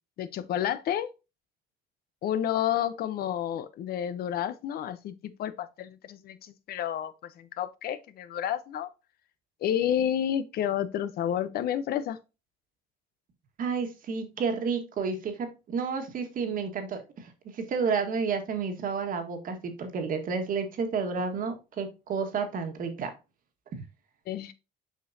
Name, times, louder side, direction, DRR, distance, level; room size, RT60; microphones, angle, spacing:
voice 1, 0.2-1.1 2.2-8.9 9.6-12.2 24.3-24.5, left 10 dB, 65° left, 0.8 m, -30 dB
voice 2, 13.6-23.1, right 5 dB, 55° right, 1.6 m, -31 dB
7.6 x 5.2 x 2.7 m
cardioid pair, 110°, 17 cm